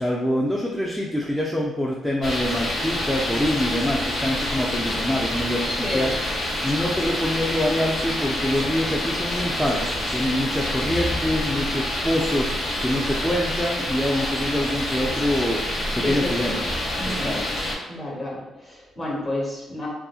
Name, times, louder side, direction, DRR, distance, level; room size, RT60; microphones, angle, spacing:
voice 1, 0.0-6.2 6.6-16.7 17.0-17.6, left 1 dB, 5° left, -4 dB, 0.4 m, -25 dB
sound 1, 2.2-17.7, left 1 dB, 60° left, 0.9 m, -27 dB
voice 2, 5.7-6.1 16.0-16.6 17.0-17.4 17.9-19.9, left 1 dB, 25° left, -4 dB, 1.1 m, -30 dB
2.8 x 2.4 x 2.3 m, 1.0 s
cardioid pair, 90°, 0 cm